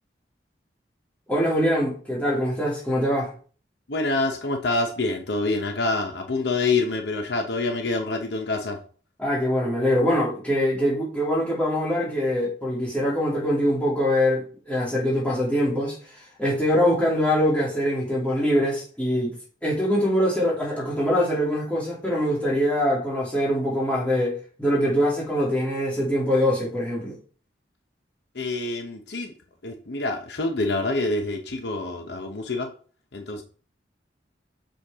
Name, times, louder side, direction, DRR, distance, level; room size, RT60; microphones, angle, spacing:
voice 1, 1.3-3.3 9.2-15.9 16.4-19.3 19.6-27.1, equal, 10° left, 2.6 m, -23 dB
voice 2, 3.9-8.8 28.3-29.3 29.6-32.7 33.1-33.4, left 3 dB, 70° left, 0.9 m, -26 dB
6.6 x 5.1 x 3.6 m
head